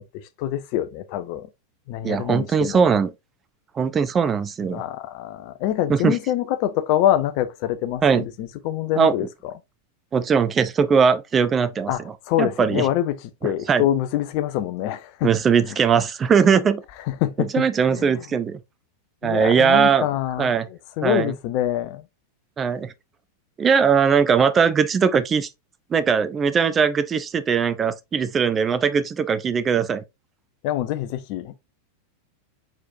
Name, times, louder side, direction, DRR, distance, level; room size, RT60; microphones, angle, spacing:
voice 1, 0.0-1.5 1.9-2.9 4.7-9.3 11.9-13.2 13.4-15.3 17.1-18.2 19.2-22.0 30.6-31.5, left 12 dB, 45° left, 0.6 m, -25 dB
voice 2, 2.0-3.1 3.8-4.8 5.9-6.2 8.0-8.2 9.0-9.1 10.1-11.9 12.4-12.9 13.4-13.8 15.2-16.8 17.5-18.6 19.2-20.1 20.4-20.7 21.0-21.3 22.6-22.9 23.6-25.5 25.9-30.0, right 6 dB, 20° right, 0.4 m, -20 dB
4.2 x 4.2 x 2.5 m
figure-of-eight pair, 90°, 0 cm